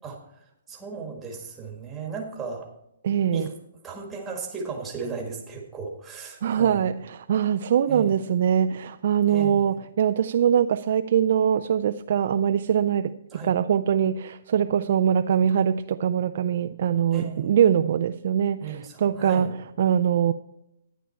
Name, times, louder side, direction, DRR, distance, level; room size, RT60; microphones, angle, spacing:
voice 1, 0.7-2.7 3.3-3.5 3.8-6.9 7.9-8.3 9.3-9.8 13.3-13.5 17.1-17.5 18.6-19.5, right 4 dB, 5° right, 1.7 m, -36 dB
voice 2, 3.0-3.5 6.4-13.1 13.4-19.5 19.8-20.3, right 9 dB, 45° right, 0.4 m, -22 dB
11.5 x 10.0 x 4.4 m
hypercardioid pair, 170°, 0 cm